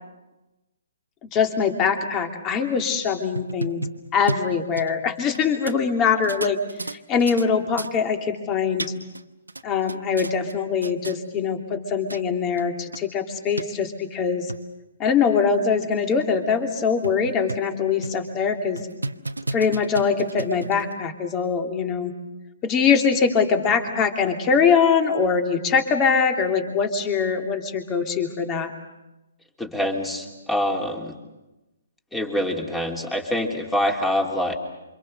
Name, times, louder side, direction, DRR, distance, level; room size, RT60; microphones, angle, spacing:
voice 1, 1.2-3.8 4.1-8.9 9.6-14.5 15.0-18.8 19.5-22.1 22.6-28.7, left 6 dB, 20° left, 5 dB, 2.8 m, -23 dB
sound 1, 3.2-5.4 5.7-5.8 6.2-7.5 7.8-7.9 8.5-9.2 9.5-10.5 10.8-11.2 11.8-11.9 12.1-12.2 12.6-12.7 12.9-13.0 13.6-13.7 14.3-14.6 15.1-15.2 15.5-15.6 16.1-16.2 16.5-16.6 17.0-17.7 18.0-18.3 18.8-20.9, right 2 dB, 85° right, 1.0 m, -32 dB
voice 2, 29.6-31.1 32.1-34.5, left 1 dB, 5° left, 3 dB, 3.1 m, -25 dB
28.0 x 26.0 x 6.6 m, 1.0 s
figure-of-eight pair, 130°, 0 cm